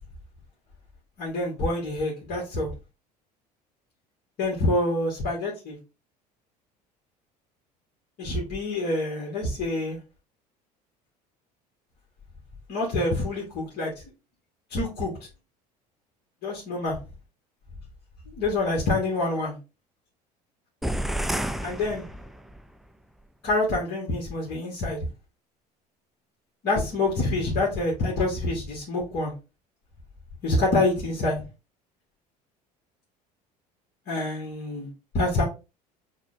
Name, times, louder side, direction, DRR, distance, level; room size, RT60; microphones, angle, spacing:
voice 1, 1.2-2.7 4.4-5.8 8.2-10.0 12.7-13.9 14.7-15.1 16.4-17.0 18.3-19.6 21.6-22.0 23.4-25.0 26.6-29.3 30.4-31.4 34.1-35.4, left 2 dB, 55° left, 1.5 m, -26 dB
sound 1, 20.8-22.7, right 1 dB, ahead, 0.3 m, -30 dB
5.7 x 2.3 x 2.6 m
hypercardioid pair, 70°, 20 cm